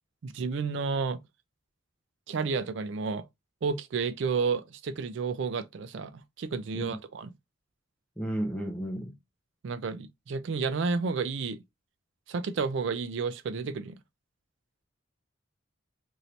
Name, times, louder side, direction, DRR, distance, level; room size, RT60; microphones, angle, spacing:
voice 1, 0.2-1.2 2.3-3.3 3.6-7.3 9.6-11.6 12.3-14.0, right 4 dB, 60° right, 0.4 m, -31 dB
voice 2, 8.2-9.1, right 1 dB, 5° left, 0.5 m, -33 dB
3.1 x 2.7 x 2.6 m
head